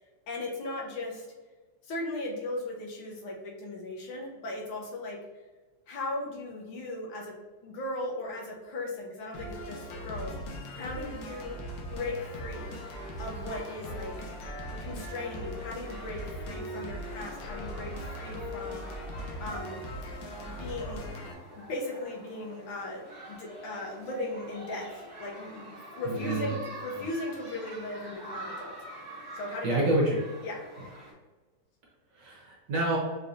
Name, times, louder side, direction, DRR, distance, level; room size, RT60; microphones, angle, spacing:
voice 1, 0.3-1.3 1.8-5.2 5.9-7.3 7.6-11.6 11.9-12.7 13.2-14.1 14.8-18.8 19.4-19.8 20.5-28.7 29.3-29.9 30.4-30.6, left 2 dB, 85° left, -1 dB, 1.7 m, -37 dB
sound 1, 9.3-21.3, equal, 70° left, 1.4 m, -39 dB
sound 2, 12.3-31.1, right 1 dB, 15° right, 0.7 m, -47 dB
voice 2, 26.0-26.5 29.6-30.2 32.1-33.0, right 1 dB, 60° right, -3 dB, 1.6 m, -27 dB
5.1 x 2.8 x 2.6 m, 1.3 s
omnidirectional pair, 2.3 m